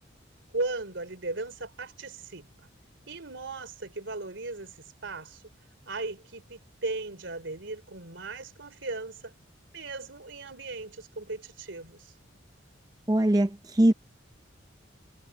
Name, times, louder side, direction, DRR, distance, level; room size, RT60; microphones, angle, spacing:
voice 1, 0.5-2.5 3.1-5.4 5.9-9.3 9.7-12.1, right 3 dB, 70° right, 3.7 m, -37 dB
voice 2, 13.1-13.9, right 1 dB, 20° right, 0.6 m, -22 dB
head